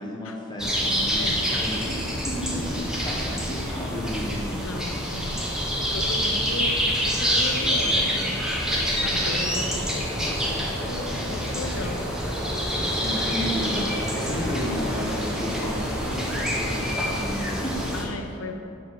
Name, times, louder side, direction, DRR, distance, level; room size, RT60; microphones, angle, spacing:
voice 1, 0.0-2.0 2.2-4.6 12.9-17.8, equal, 20° left, -3 dB, 1.2 m, -33 dB
sound 1, 0.6-18.0, equal, 5° right, 1.1 m, -26 dB
voice 2, 4.5-8.2 9.0-12.1 17.9-18.6, left 2 dB, 80° left, 5 dB, 0.7 m, -36 dB
6.9 x 4.8 x 5.8 m, 2.6 s
head